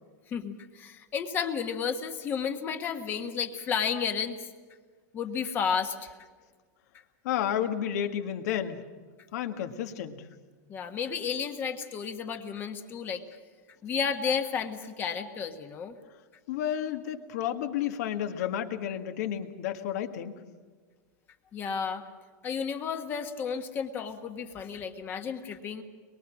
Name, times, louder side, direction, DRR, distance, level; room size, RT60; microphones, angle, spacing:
voice 1, 0.3-4.5 5.1-6.1 10.7-13.2 13.8-15.9 21.5-22.0 22.4-25.8, left 6 dB, 20° left, 6 dB, 1.5 m, -32 dB
voice 2, 7.2-8.8 9.3-10.3 16.5-20.4, left 10 dB, 60° left, 7 dB, 1.9 m, -31 dB
23.5 x 23.0 x 6.3 m, 1.5 s
supercardioid pair, 170°, 10 cm